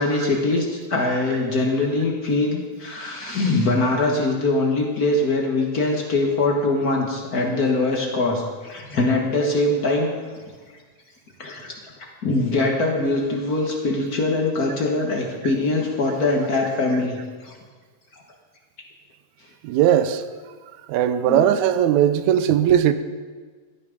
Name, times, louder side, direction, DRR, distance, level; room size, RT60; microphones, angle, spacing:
voice 1, 0.0-10.1 11.4-11.7 12.2-17.2 17.4-17.5 21.3-21.4, left 2 dB, 45° left, 0 dB, 1.2 m, -22 dB
voice 2, 19.6-20.2 20.9-22.9, right 10 dB, 80° right, 12 dB, 1.9 m, -18 dB
13.5 x 9.4 x 5.2 m, 1.5 s
omnidirectional pair, 3.4 m